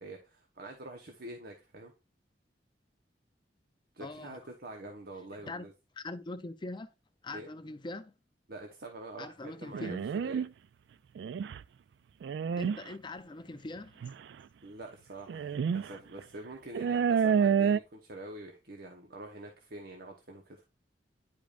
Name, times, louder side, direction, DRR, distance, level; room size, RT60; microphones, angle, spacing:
voice 1, 0.0-1.9 3.9-5.7 7.3-7.5 8.5-10.4 14.6-20.6, right 2 dB, 60° right, 1.1 m, -46 dB
voice 2, 4.0-4.4 5.4-5.7 6.0-6.9 7.2-8.1 9.2-10.0 12.6-14.0, left 2 dB, 25° left, 0.5 m, -42 dB
sound 1, 9.7-10.5 11.2-11.6 12.2-12.8 14.0-14.1 15.3-15.9 16.2-16.3 16.7-17.8, right 7 dB, 75° right, 0.3 m, -28 dB
10.5 x 5.2 x 2.5 m
head